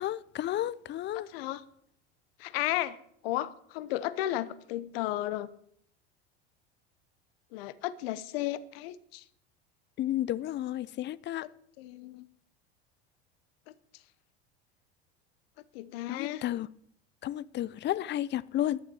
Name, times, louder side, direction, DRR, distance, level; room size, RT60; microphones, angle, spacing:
voice 1, 0.0-1.3 10.0-11.5 16.1-16.7 17.2-18.8, left 13 dB, 35° left, 0.6 m, -32 dB
voice 2, 1.1-1.6 2.4-3.0 3.2-5.5 7.5-9.2 11.4-11.5 11.8-12.3 15.7-16.4, left 15 dB, 70° left, 1.0 m, -34 dB
11.5 x 7.2 x 9.2 m
hypercardioid pair, 85°, 31 cm